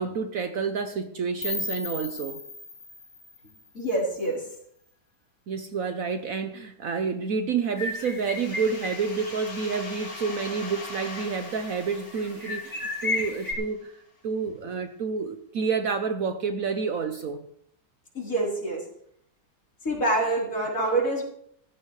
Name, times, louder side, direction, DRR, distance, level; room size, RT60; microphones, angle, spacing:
voice 1, 0.0-2.4 5.5-14.0 14.2-17.5, right 5 dB, 60° right, 7 dB, 1.1 m, -29 dB
sound 1, 1.4-4.3, left 2 dB, 25° left, 1.5 m, -37 dB
voice 2, 3.7-4.4 18.1-18.8 19.8-21.2, right 2 dB, 50° left, -3 dB, 4.6 m, -26 dB
sound 2, 7.8-9.7 10.0-10.1 10.6-11.4 12.0-13.5, left 3 dB, 10° left, 3.9 m, -34 dB
sound 3, 8.3-13.9, left 2 dB, 70° left, 2.8 m, -41 dB
15.0 x 14.5 x 3.3 m, 0.68 s
omnidirectional pair, 1.9 m